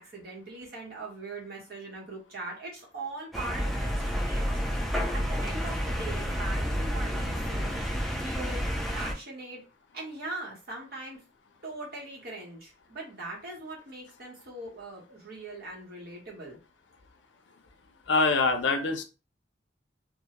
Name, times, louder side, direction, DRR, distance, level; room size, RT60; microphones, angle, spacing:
voice 1, 0.0-4.6 5.1-7.7 8.0-8.7 8.9-9.6 9.9-11.2 11.6-16.6, right 2 dB, 55° right, -3 dB, 1.0 m, -41 dB
sound 1, 3.3-9.1, equal, ahead, 0.3 m, -30 dB
voice 2, 18.1-19.0, left 3 dB, 75° left, 6 dB, 0.5 m, -24 dB
2.2 x 2.0 x 2.8 m, 0.32 s
head